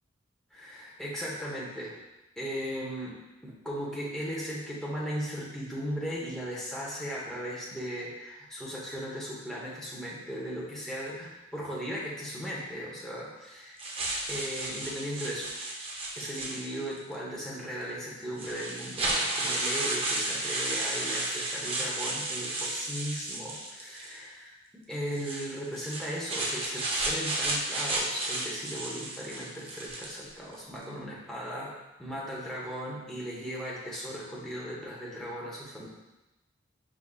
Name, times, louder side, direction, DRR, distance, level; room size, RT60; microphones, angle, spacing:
voice 1, 0.5-2.0 2.4-3.2 3.4-13.8 14.3-15.6 16.2-31.7 32.0-35.9, equal, 5° left, -6 dB, 0.8 m, -37 dB
sound 1, 13.8-17.0 17.8-17.9 18.4-24.2 25.1-30.3, right 2 dB, 30° right, 0.5 m, -33 dB
4.6 x 3.7 x 2.3 m, 1.0 s
head